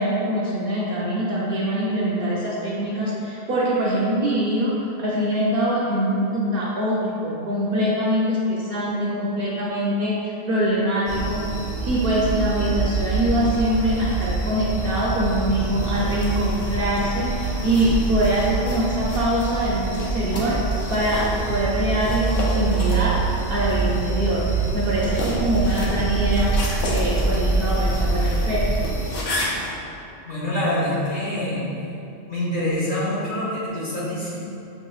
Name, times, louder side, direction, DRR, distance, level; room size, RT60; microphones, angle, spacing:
voice 1, 0.0-4.7 5.0-11.4 11.8-23.2 23.5-28.8, right 1 dB, 60° right, -6 dB, 0.7 m, -23 dB
sound 1, 11.1-29.1, right 3 dB, 25° left, 0.8 m, -25 dB
sound 2, 15.8-29.7, left 1 dB, 85° left, 1.1 m, -33 dB
voice 2, 30.2-31.6 32.3-34.3, left 1 dB, 45° left, -9 dB, 1.2 m, -25 dB
6.5 x 2.8 x 2.3 m, 2.7 s
omnidirectional pair, 1.3 m